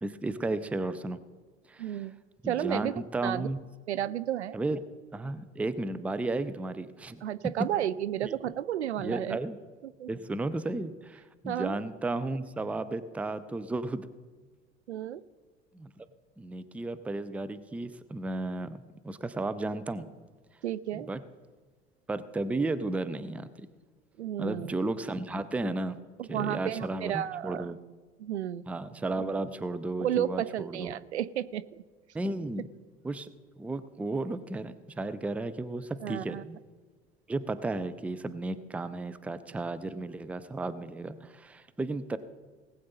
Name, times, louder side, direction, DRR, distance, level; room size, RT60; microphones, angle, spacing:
voice 1, 0.0-1.2 1.7-2.0 2.4-3.6 4.5-4.8 5.1-7.2 8.2-8.4 9.0-9.6 10.1-14.1 15.7-16.1 16.4-20.1 20.9-21.2 22.1-23.7 24.4-26.0 26.3-27.8 28.7-31.0 32.1-32.7 33.0-33.3 33.6-36.6 37.3-42.2, right 2 dB, 5° right, 13 dB, 0.4 m, -34 dB
voice 2, 1.8-2.2 2.5-3.5 3.9-4.6 7.2-9.4 9.8-10.1 11.4-11.8 14.9-15.2 20.6-21.1 24.2-24.7 26.2-27.7 28.2-28.7 30.0-31.8 36.0-36.4, right 11 dB, 75° right, 15 dB, 0.5 m, -32 dB
19.0 x 7.9 x 4.1 m, 1.5 s
figure-of-eight pair, 70°, 34 cm